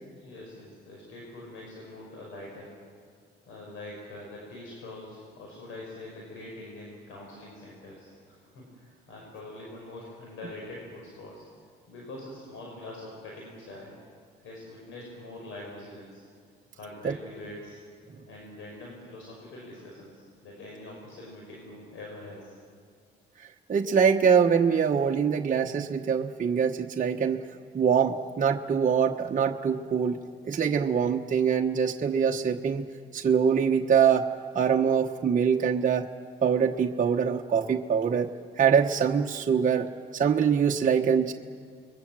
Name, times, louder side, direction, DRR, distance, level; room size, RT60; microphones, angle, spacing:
voice 1, 0.2-2.7 3.5-11.5 11.9-13.9 14.4-16.2 16.7-17.8 18.3-22.6, left 2 dB, 85° left, -2 dB, 6.0 m, -44 dB
voice 2, 23.7-27.4 27.7-30.2 30.4-32.8 33.1-34.3 34.5-36.1 36.4-38.3 38.6-39.9 40.1-41.3, right 7 dB, 40° right, 1 dB, 1.2 m, -24 dB
28.0 x 22.5 x 7.6 m, 2.1 s
cardioid pair, 90°, 20 cm